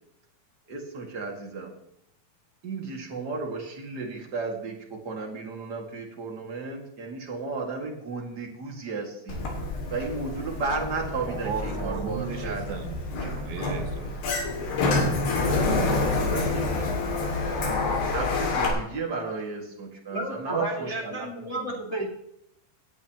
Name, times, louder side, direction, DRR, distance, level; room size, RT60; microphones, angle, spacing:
voice 1, 0.7-1.7 2.6-9.4 9.9-12.8 15.3-16.7 18.1-21.3 21.5-21.8, right 3 dB, 35° right, 0 dB, 2.1 m, -34 dB
Sliding door, 9.3-18.7, left 3 dB, 90° left, 4.7 m, -28 dB
voice 2, 11.3-14.2, right 7 dB, 75° right, 5 dB, 2.9 m, -36 dB
voice 3, 20.1-22.1, right 1 dB, 40° left, -2 dB, 0.9 m, -32 dB
18.5 x 11.0 x 3.1 m, 0.79 s
omnidirectional pair, 4.5 m